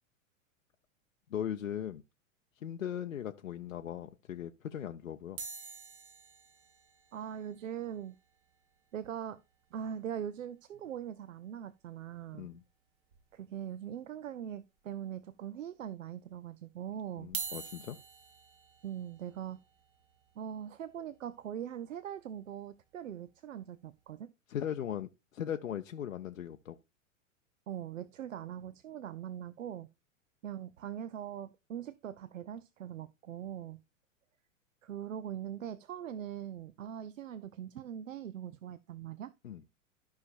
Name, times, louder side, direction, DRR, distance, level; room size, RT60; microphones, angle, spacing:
voice 1, 1.3-2.0 2.6-5.4 12.3-12.6 17.2-18.0 24.5-26.8 39.4-39.6, left 9 dB, 75° left, 0.6 m, -38 dB
sound 1, 5.4-9.7 10.0-10.1 10.3-10.5 10.8-11.0 12.3-12.4 13.1-13.6 14.1-14.2 15.1-15.2 17.2-23.3 23.8-24.1, right 5 dB, 45° right, 1.9 m, -47 dB
voice 2, 7.1-8.1 8.9-9.4 9.7-12.5 13.3-17.3 18.8-19.6 20.4-24.3 27.7-29.9 30.4-33.8 34.8-39.3, right 9 dB, 70° right, 0.6 m, -41 dB
13.5 x 5.7 x 2.5 m
figure-of-eight pair, 95°, 40 cm